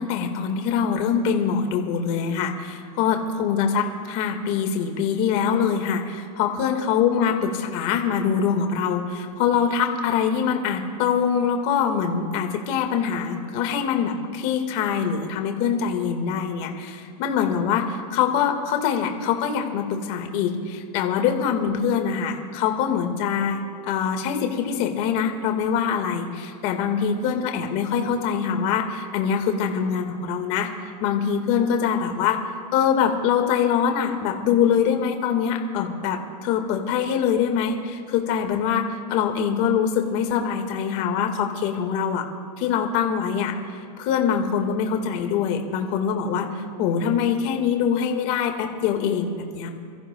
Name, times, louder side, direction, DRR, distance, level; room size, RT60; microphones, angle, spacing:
voice 1, 0.0-30.7 31.0-32.4 32.7-42.3 42.6-43.5 44.0-49.7, left 7 dB, 40° left, 3 dB, 1.9 m, -24 dB
28.0 x 14.5 x 2.3 m, 2.4 s
supercardioid pair, 155°, 21 cm